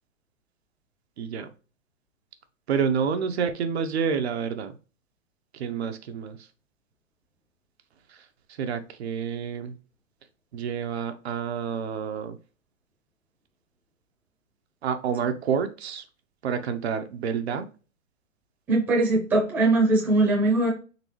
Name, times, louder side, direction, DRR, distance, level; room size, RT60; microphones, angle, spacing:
voice 1, 1.2-1.5 2.7-4.7 5.5-6.5 8.1-9.7 10.5-12.4 14.8-16.0 16.4-17.7, right 6 dB, 55° right, 9 dB, 0.6 m, -29 dB
voice 2, 18.7-20.7, right 2 dB, 5° right, -3 dB, 0.6 m, -21 dB
4.0 x 3.4 x 3.0 m, 0.35 s
hypercardioid pair, 150°, 39 cm